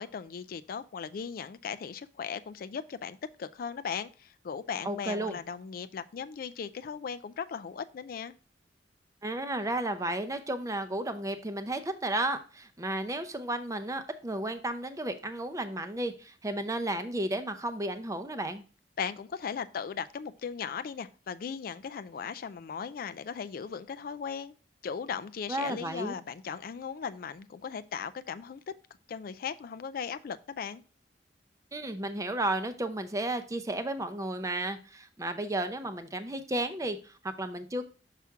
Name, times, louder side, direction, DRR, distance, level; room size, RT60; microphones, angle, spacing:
voice 1, 0.0-8.3 19.0-24.5 24.8-28.6 29.1-30.8, left 6 dB, 55° left, 0.3 m, -37 dB
voice 2, 4.8-5.4 9.2-18.6 25.5-26.1 31.7-37.9, right 1 dB, 20° right, 0.6 m, -33 dB
5.8 x 5.8 x 3.5 m
head